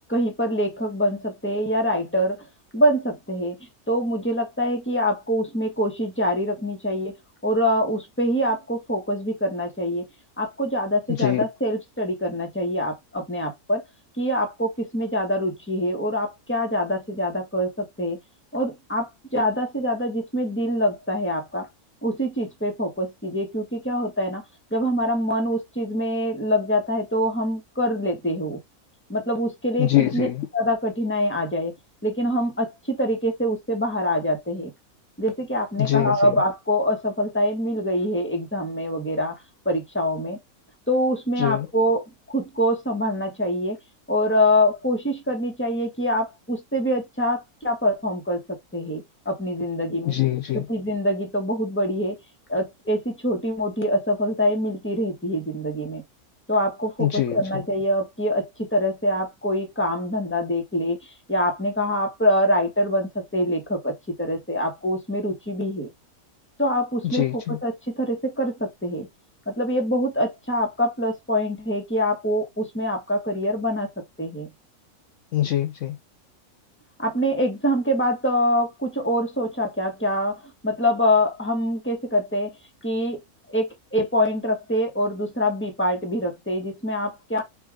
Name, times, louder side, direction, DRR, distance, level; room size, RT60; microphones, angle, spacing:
voice 1, 0.1-2.4 2.7-3.6 3.9-7.1 7.4-10.1 10.4-13.8 14.2-18.2 18.5-21.7 22.0-24.4 24.7-28.6 29.1-30.3 30.5-31.7 32.0-34.7 35.2-39.4 39.6-40.4 40.9-43.8 44.1-50.2 50.5-52.2 52.5-56.0 56.5-61.0 61.3-65.9 66.6-69.1 69.5-74.5 77.0-82.6 82.8-83.2 83.5-87.4, equal, 10° left, 1.1 m, -25 dB
voice 2, 29.8-30.3 35.8-36.2 41.4-41.7 50.0-50.6 57.0-57.4 67.1-67.6 75.3-76.0, left 13 dB, 65° left, 0.8 m, -23 dB
4.7 x 2.6 x 3.6 m
omnidirectional pair, 1.6 m